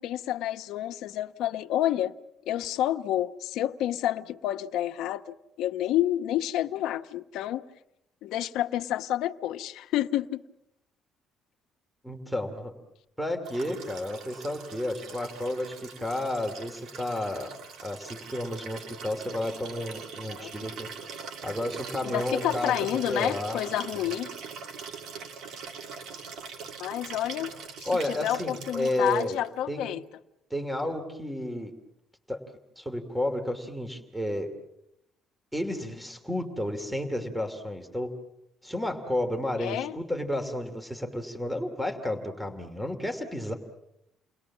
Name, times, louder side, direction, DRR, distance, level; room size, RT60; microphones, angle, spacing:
voice 1, 0.0-2.1 2.5-7.6 8.2-10.4 20.4-20.5 22.0-24.3 26.8-27.5 27.8-30.0 39.6-40.0, left 13 dB, 80° left, 1.1 m, -29 dB
voice 2, 12.0-12.7 13.2-17.5 17.8-20.9 21.4-22.8 23.1-23.6 27.9-29.4 29.7-29.9 30.5-31.7 32.3-32.4 32.8-34.5 35.5-38.1 38.6-43.5, left 1 dB, ahead, 2.7 m, -31 dB
Liquid, 13.4-29.5 30.8-30.9, right 6 dB, 70° right, 2.6 m, -42 dB
30.0 x 21.0 x 7.3 m
cardioid pair, 145°, 0 cm